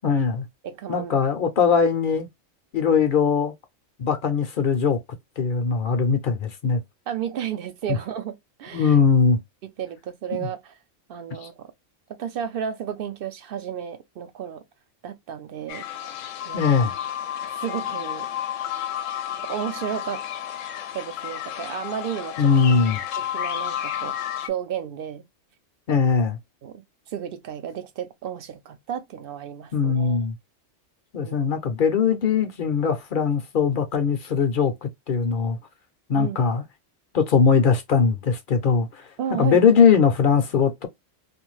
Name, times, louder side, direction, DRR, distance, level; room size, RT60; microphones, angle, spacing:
voice 1, 0.0-0.5 0.9-2.3 2.7-3.5 4.0-5.0 5.4-6.8 7.9-8.0 8.7-9.4 10.4-10.5 11.4-11.5 16.5-16.9 22.4-23.0 25.9-26.4 29.7-30.3 31.1-35.6 36.1-36.6 37.1-39.0 39.4-40.9, left 6 dB, 55° left, 0.6 m, -20 dB
voice 2, 0.6-1.1 7.1-9.0 9.6-10.7 11.1-11.7 12.1-14.6 15.0-16.2 16.5-16.7 17.4-18.3 19.5-20.2 20.9-22.5 23.2-25.3 26.6-30.3 31.2-31.4 36.1-36.4 39.2-39.6, right 9 dB, 60° right, 0.6 m, -33 dB
sound 1, 15.7-24.5, left 10 dB, 80° left, 0.9 m, -31 dB
2.5 x 2.3 x 3.1 m
omnidirectional pair, 1.3 m